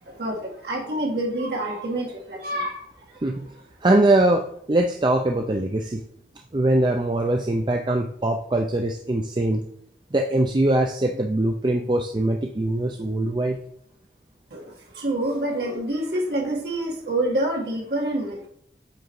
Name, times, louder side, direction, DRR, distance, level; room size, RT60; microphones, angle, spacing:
voice 1, 0.0-3.2 14.5-18.5, right 1 dB, 65° right, -1 dB, 1.9 m, -27 dB
voice 2, 3.8-6.0 6.5-9.6 10.1-13.6, right 1 dB, 25° right, 3 dB, 0.5 m, -22 dB
7.9 x 4.0 x 4.7 m, 0.68 s
head